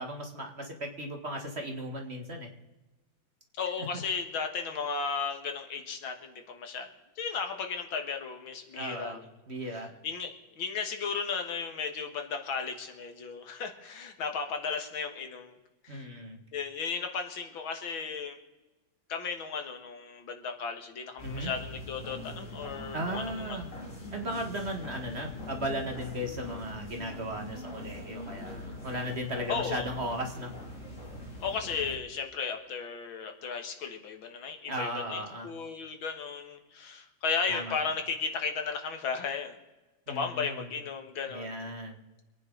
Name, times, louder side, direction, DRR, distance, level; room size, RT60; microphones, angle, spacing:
voice 1, 0.0-2.5 3.8-3.9 8.7-9.2 9.5-9.9 15.9-16.4 21.2-21.5 22.9-23.7 24.1-30.5 34.7-35.5 37.5-37.7 40.1-40.7 41.3-42.0, equal, 35° right, 3 dB, 1.9 m, -36 dB
voice 2, 3.6-6.9 7.2-9.2 9.7-15.5 15.8-16.1 16.5-18.4 19.1-23.6 29.5-29.9 31.4-39.6 40.1-41.6, left 5 dB, 80° left, 5 dB, 2.3 m, -35 dB
sound 1, 21.2-32.0, left 1 dB, 40° left, 3.1 m, -43 dB
25.5 x 9.6 x 3.9 m, 1.1 s
omnidirectional pair, 2.2 m